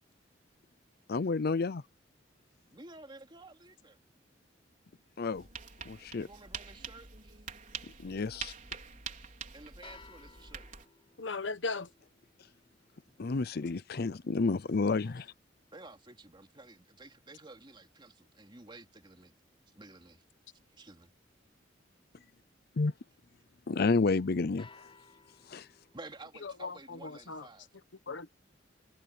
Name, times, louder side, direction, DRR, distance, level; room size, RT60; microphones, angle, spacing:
voice 1, 1.1-1.8 5.2-5.5 5.8-6.3 8.0-8.5 13.2-15.3 22.8-22.9 23.7-24.9 25.5-25.6, left 3 dB, 55° left, 0.6 m, -30 dB
voice 2, 2.7-4.0 6.2-7.5 9.5-10.7 13.1-13.2 15.0-15.1 15.7-19.3 19.7-20.2 20.7-21.1 25.9-27.7, right 2 dB, 25° right, 2.8 m, -52 dB
sound 1, 5.3-10.9, right 6 dB, 45° right, 4.6 m, -45 dB
sound 2, 9.8-16.0 24.6-26.5, left 4 dB, 30° left, 4.4 m, -60 dB
voice 3, 11.2-11.9 26.4-27.5 28.1-28.3, left 3 dB, 80° left, 1.2 m, -37 dB
head